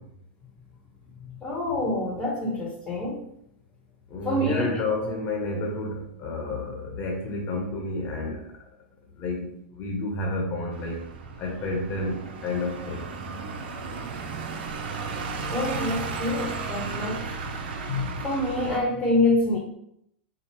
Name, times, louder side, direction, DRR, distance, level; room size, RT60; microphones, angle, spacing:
voice 1, 1.4-3.2 4.2-4.8 15.5-17.3 18.2-19.6, left 2 dB, 20° left, -2 dB, 1.2 m, -26 dB
voice 2, 4.1-8.4 9.2-9.5 9.8-11.0 11.4-12.2 12.4-13.0 17.9-18.1, left 2 dB, 40° left, 0 dB, 1.2 m, -30 dB
sound 1, 10.7-18.8, right 4 dB, 65° right, 0.7 m, -34 dB
5.0 x 2.3 x 4.4 m, 0.74 s
hypercardioid pair, 110°, 6 cm